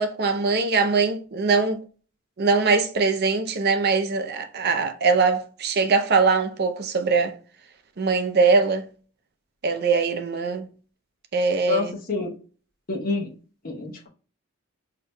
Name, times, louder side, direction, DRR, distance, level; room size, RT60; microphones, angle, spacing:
voice 1, 0.0-1.8 2.4-7.3 8.0-8.9 9.6-10.7 11.3-11.9, right 4 dB, 50° right, 0.6 m, -22 dB
voice 2, 11.7-12.4 12.9-13.3 13.6-14.1, left 4 dB, 45° left, 1.0 m, -27 dB
5.8 x 2.8 x 2.2 m
head